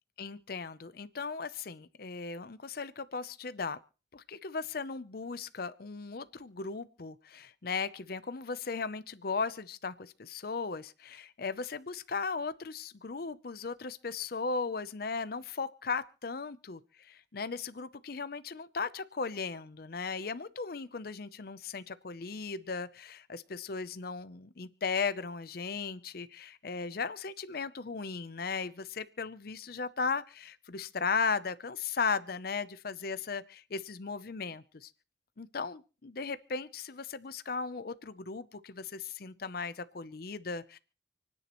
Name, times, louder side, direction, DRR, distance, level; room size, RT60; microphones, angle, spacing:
voice 1, 0.2-3.8 4.1-34.9 35.4-40.8, left 5 dB, 55° left, 14 dB, 0.6 m, -37 dB
29.0 x 9.9 x 3.0 m, 0.37 s
head